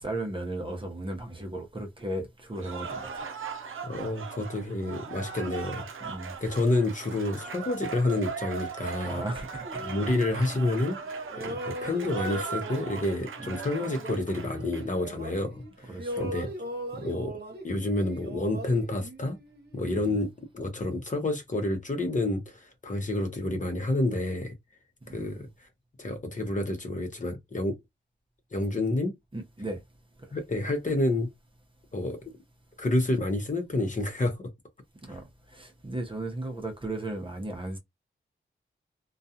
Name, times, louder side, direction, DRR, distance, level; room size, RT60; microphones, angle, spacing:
voice 1, 0.0-3.2 6.0-6.3 9.0-9.8 15.9-16.3 19.8-20.2 25.1-25.3 29.3-29.8 35.0-37.8, right 1 dB, 25° right, 0.8 m, -36 dB
Cheering / Applause, 2.5-15.1, right 5 dB, 75° right, 0.6 m, -39 dB
voice 2, 3.8-5.9 6.4-9.3 9.8-11.0 11.4-16.5 17.0-17.4 17.6-19.4 19.7-24.5 25.1-25.5 26.0-27.8 28.5-29.1 30.3-31.3 31.9-32.3 32.8-34.5 35.1-35.2, left 2 dB, 40° left, 0.9 m, -29 dB
sound 1, 9.6-11.0 11.3-15.7 16.0-19.8, right 1 dB, 55° right, 1.0 m, -39 dB
2.3 x 2.3 x 2.7 m
cardioid pair, 60°, 21 cm